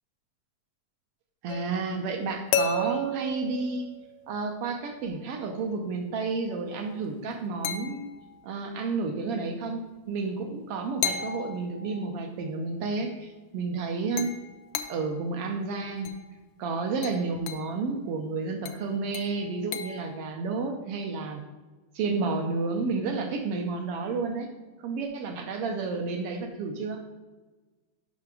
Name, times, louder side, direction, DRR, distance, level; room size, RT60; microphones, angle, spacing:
voice 1, 1.4-3.9 4.3-8.1 8.4-9.8 10.1-14.3 14.9-16.1 16.6-21.4 21.9-24.5 24.8-27.0, right 4 dB, 80° right, 4 dB, 1.3 m, -31 dB
sound 1, 1.5-4.6 7.6-8.5 11.0-12.2 14.2-15.2 16.1-16.3 17.0-17.8 18.7-20.1, left 4 dB, 80° left, 1.9 m, -34 dB
6.4 x 5.9 x 4.8 m, 1.2 s
omnidirectional pair, 3.5 m